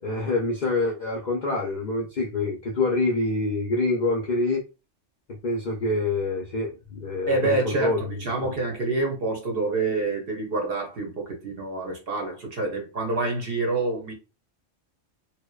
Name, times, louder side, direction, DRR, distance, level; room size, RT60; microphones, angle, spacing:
voice 1, 0.0-4.6 5.4-8.0 8.4-8.5, left 2 dB, 60° left, 0.5 m, -26 dB
voice 2, 7.3-14.1, right 3 dB, 60° right, 0.7 m, -27 dB
2.7 x 2.1 x 2.2 m
omnidirectional pair, 1.3 m